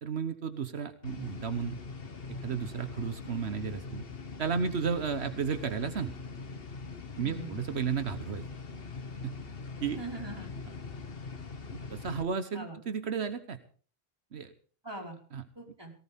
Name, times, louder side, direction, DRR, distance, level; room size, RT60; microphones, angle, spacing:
voice 1, 0.0-1.8 2.4-4.0 4.4-6.1 7.2-8.4 9.2-9.3 9.8-10.0 11.7-13.6 14.3-14.5 15.3-15.4, right 6 dB, 80° right, 9 dB, 1.4 m, -33 dB
sound 1, 1.0-12.2, left 4 dB, 65° left, 1.6 m, -42 dB
voice 2, 7.2-7.6 9.9-10.6 12.5-12.8 14.8-15.2 15.6-15.9, right 2 dB, 25° right, 0 dB, 5.1 m, -42 dB
18.0 x 18.0 x 3.6 m, 0.43 s
omnidirectional pair, 1.1 m